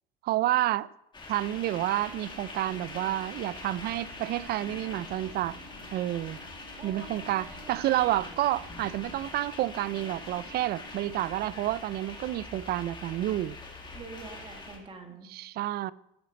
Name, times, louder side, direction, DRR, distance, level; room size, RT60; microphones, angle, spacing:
voice 1, 0.2-0.9 1.3-5.6 5.9-6.4 6.8-13.6 15.2-15.9, right 14 dB, 55° right, 0.4 m, -29 dB
sound 1, 1.1-14.8, left 3 dB, 25° left, 2.0 m, -44 dB
sound 2, 1.5-11.5, right 4 dB, 80° right, 1.4 m, -55 dB
voice 2, 6.8-7.8 13.9-15.3, right 3 dB, 30° right, 1.6 m, -46 dB
14.5 x 5.1 x 5.2 m
supercardioid pair, 95°, 19 cm